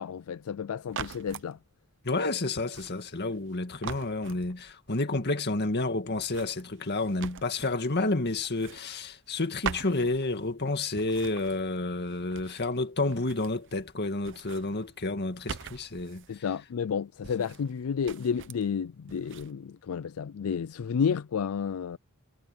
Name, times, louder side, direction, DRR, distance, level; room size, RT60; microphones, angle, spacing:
voice 1, 0.0-1.6 16.3-22.0, left 6 dB, 70° left, 0.4 m, -31 dB
sound 1, 0.9-1.5 2.6-3.5 3.8-4.9 6.1-8.0 8.4-9.4 9.6-10.6 10.9-12.8 13.0-13.9 14.2-16.4 17.2-17.8 18.0-18.7 19.1-19.5, right 6 dB, 60° right, 0.8 m, -42 dB
voice 2, 2.0-16.5, left 2 dB, 50° left, 2.1 m, -30 dB
head